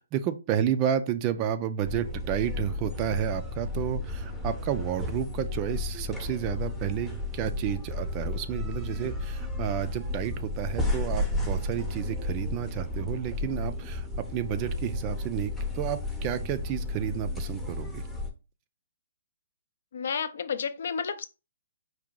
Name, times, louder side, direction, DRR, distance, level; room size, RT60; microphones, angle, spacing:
voice 1, 0.0-18.0, right 10 dB, 25° right, 0.3 m, -31 dB
sound 1, 1.8-18.3, left 2 dB, ahead, 0.7 m, -33 dB
voice 2, 19.9-21.3, left 6 dB, 60° left, 0.5 m, -31 dB
4.8 x 2.7 x 3.7 m
hypercardioid pair, 165°, 0 cm